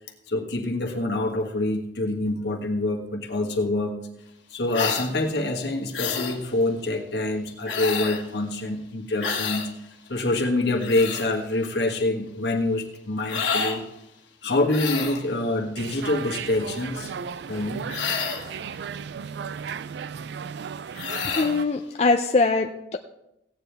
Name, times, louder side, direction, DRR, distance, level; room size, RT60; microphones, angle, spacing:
voice 1, 0.3-4.0 4.5-9.7 10.1-13.8 14.4-17.1 17.5-17.8, left 2 dB, 65° left, 2 dB, 1.5 m, -26 dB
sound 1, 4.7-5.1 5.9-6.4 7.7-8.2 9.2-9.7 10.6-11.3 13.3-13.8 14.7-15.2 17.9-18.5 20.9-21.5, left 6 dB, 90° left, 1.4 m, -29 dB
sound 2, 15.8-21.7, right 6 dB, 70° right, 0.3 m, -35 dB
voice 2, 21.3-23.0, left 3 dB, 35° left, 4 dB, 0.4 m, -22 dB
16.0 x 9.3 x 3.4 m, 0.86 s
head